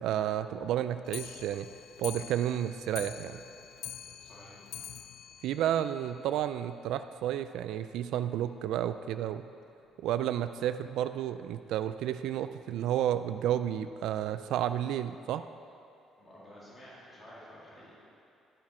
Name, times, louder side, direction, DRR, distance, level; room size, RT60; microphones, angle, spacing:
voice 1, 0.0-1.7 2.0-3.4 5.4-9.4 10.0-15.4, right 11 dB, 70° right, 10 dB, 0.3 m, -31 dB
Clock, 1.0-6.5 6.9-7.0 7.2-7.3 7.7-7.8 8.0-8.1 8.8-8.9 9.6-9.7 10.4-10.5, left 10 dB, 60° left, 0.5 m, -46 dB
voice 2, 4.2-4.6 16.2-17.9, equal, 20° left, -7 dB, 2.4 m, -51 dB
10.5 x 10.5 x 4.3 m, 2.6 s
cardioid pair, 175°, 0 cm